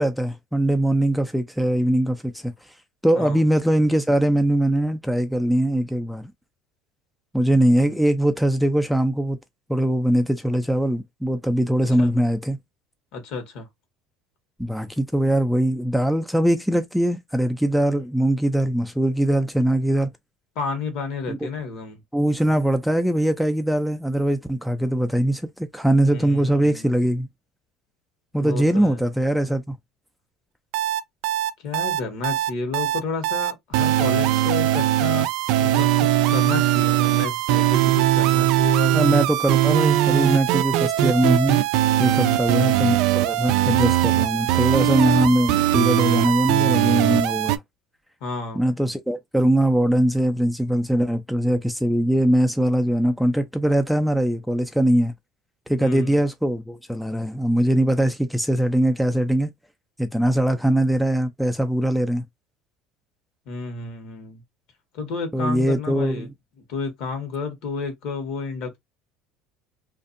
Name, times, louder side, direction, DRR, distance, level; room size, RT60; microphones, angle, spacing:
voice 1, 0.0-2.5 3.0-6.3 7.3-9.4 9.7-12.6 14.6-20.1 21.3-21.4 22.1-25.4 25.7-27.3 28.3-29.8 38.9-41.7 42.0-47.6 48.6-55.1 55.7-59.5 60.0-62.2 65.3-66.3, right 1 dB, ahead, 0.4 m, -21 dB
voice 2, 13.1-13.7 20.5-22.0 26.0-27.1 28.4-29.0 31.6-35.3 35.6-39.0 42.1-42.7 48.2-48.8 55.8-56.2 63.5-64.4 64.9-66.3 66.7-68.8, left 4 dB, 70° left, 1.2 m, -31 dB
sound 1, 30.7-47.6, right 14 dB, 70° right, 0.3 m, -20 dB
2.5 x 2.4 x 2.5 m
supercardioid pair, 105°, 0 cm